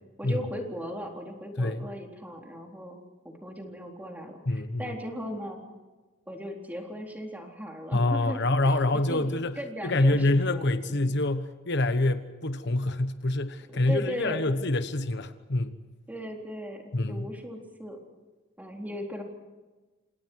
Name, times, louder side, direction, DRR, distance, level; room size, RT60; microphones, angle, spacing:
voice 1, 0.2-3.0 3.2-5.6 6.3-9.3 9.6-11.0 13.7-14.4 16.1-16.8 17.1-18.0 18.6-19.2, equal, 10° right, 1 dB, 4.0 m, -38 dB
voice 2, 1.6-1.9 4.5-4.9 7.9-9.6 9.8-15.8 16.9-17.3, left 2 dB, 55° left, 10 dB, 1.2 m, -26 dB
29.0 x 27.0 x 4.8 m, 1.2 s
head